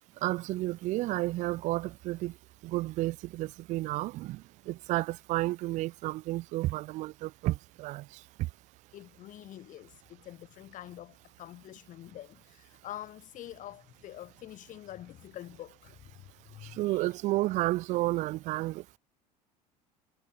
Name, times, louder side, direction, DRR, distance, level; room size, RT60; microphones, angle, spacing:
voice 1, 0.2-2.3 2.6-8.0 16.6-19.0, right 18 dB, 35° right, 0.4 m, -31 dB
voice 2, 8.9-17.1, left 13 dB, 40° left, 1.7 m, -46 dB
figure-of-eight pair, 65°, 21 cm